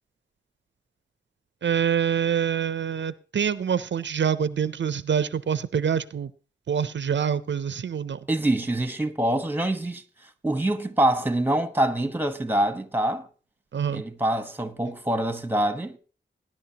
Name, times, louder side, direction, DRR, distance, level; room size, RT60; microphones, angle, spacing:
voice 1, 1.6-6.3 6.7-8.2 13.7-14.0, right 8 dB, 70° right, 0.5 m, -26 dB
voice 2, 8.3-10.0 10.4-13.3 13.9-16.0, right 1 dB, 10° right, 1.1 m, -25 dB
19.0 x 10.5 x 2.8 m
wide cardioid pair, 100°, 20 cm